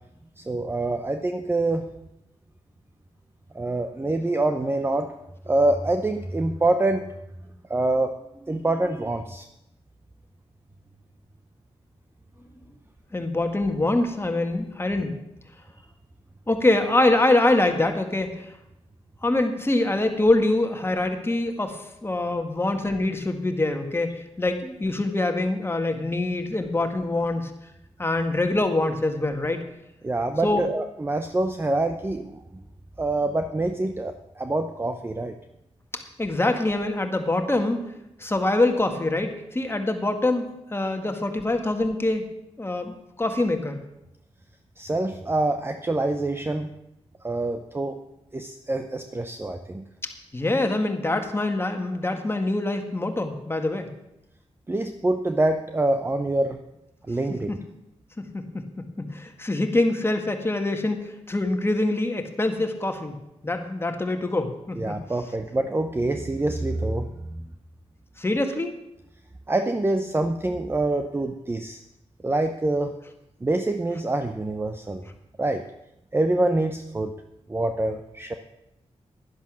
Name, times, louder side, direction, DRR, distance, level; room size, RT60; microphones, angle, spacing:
voice 1, 0.4-1.9 3.5-5.1 5.5-7.1 7.7-8.2 8.5-9.5 30.0-32.6 33.0-35.4 44.8-46.7 47.2-48.0 48.3-49.8 54.7-56.6 57.1-57.5 64.8-67.4 69.5-71.8 72.2-72.9 73.4-75.0 75.4-75.6 76.1-77.2 77.5-78.3, right 2 dB, 20° right, 7 dB, 0.8 m, -25 dB
voice 2, 13.1-15.2 16.5-18.5 19.2-27.5 28.0-29.6 30.4-30.6 35.9-37.8 38.2-42.3 42.6-43.8 50.3-53.9 57.5-57.6 58.2-58.6 59.0-63.2 63.4-65.0 68.2-68.7, left 2 dB, 20° left, 5 dB, 1.8 m, -24 dB
11.5 x 10.5 x 6.2 m, 0.86 s
cardioid pair, 85°, 11 cm